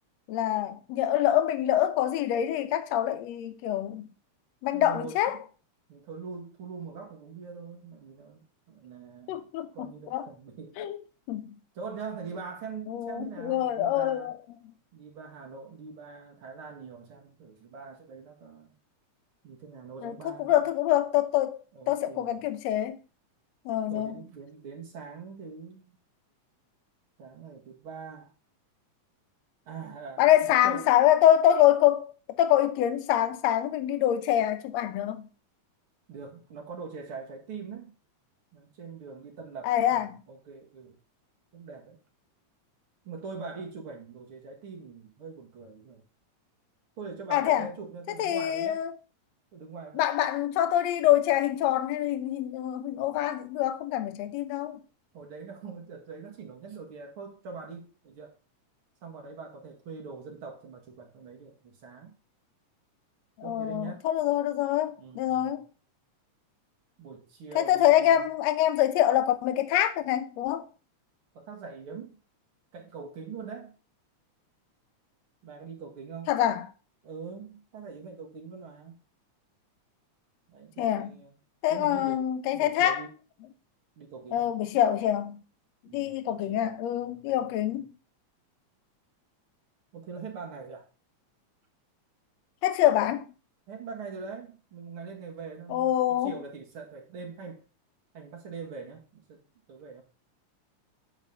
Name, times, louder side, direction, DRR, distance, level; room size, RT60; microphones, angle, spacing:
voice 1, 0.3-4.1 4.6-5.4 9.3-10.3 10.8-11.0 11.3-11.6 12.9-14.3 14.6-14.7 20.0-21.6 21.9-23.0 23.7-24.2 30.2-32.1 32.4-35.3 39.6-40.2 47.3-47.7 48.2-48.9 49.9-54.8 63.4-65.7 67.6-70.7 76.3-76.6 80.8-81.1 81.6-83.0 84.3-85.4 85.9-87.9 92.6-93.3 95.7-96.4, left 12 dB, 75° left, 1.9 m, -25 dB
voice 2, 4.7-5.4 5.9-10.8 11.8-14.3 14.9-18.7 19.4-20.6 21.7-22.4 23.9-26.0 27.2-28.3 29.7-30.9 36.1-38.0 38.5-41.0 41.5-42.0 43.0-46.0 47.0-48.9 49.5-50.0 55.1-58.3 59.0-62.2 63.4-64.1 65.0-65.6 67.0-68.3 71.3-72.2 72.7-73.8 75.4-76.3 77.0-79.0 80.5-81.3 81.7-82.3 82.5-83.1 84.0-84.5 85.9-87.8 89.9-90.9 93.7-97.7 98.1-100.0, right 5 dB, 50° right, 2.3 m, -43 dB
9.2 x 4.1 x 5.3 m
omnidirectional pair, 3.3 m